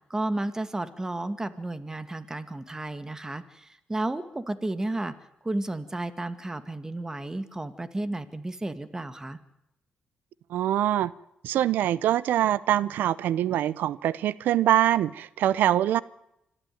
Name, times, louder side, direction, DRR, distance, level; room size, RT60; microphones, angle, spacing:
voice 1, 0.1-5.1 5.4-9.4, right 2 dB, 20° right, 12 dB, 2.2 m, -32 dB
voice 2, 10.5-11.1 11.4-16.0, right 12 dB, 85° right, 20 dB, 0.8 m, -24 dB
26.0 x 13.5 x 9.5 m, 0.83 s
cardioid pair, 70°, 3 cm